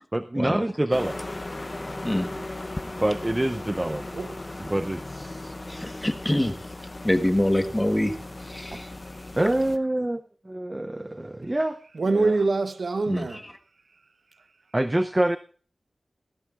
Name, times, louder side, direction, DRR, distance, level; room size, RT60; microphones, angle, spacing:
voice 1, 0.1-1.4 3.0-4.1 4.6-5.5 9.4-11.8 12.1-12.4 14.7-15.4, right 1 dB, 20° right, 0.5 m, -26 dB
sound 1, 0.9-9.8, left 2 dB, 30° left, 0.7 m, -37 dB
voice 2, 5.7-6.5 7.0-8.1 8.5-8.9 13.1-13.3, left 1 dB, 15° left, 1.2 m, -25 dB
voice 3, 12.0-13.4, right 3 dB, 70° right, 0.9 m, -25 dB
18.5 x 14.5 x 2.4 m
wide cardioid pair, 80°, 0 cm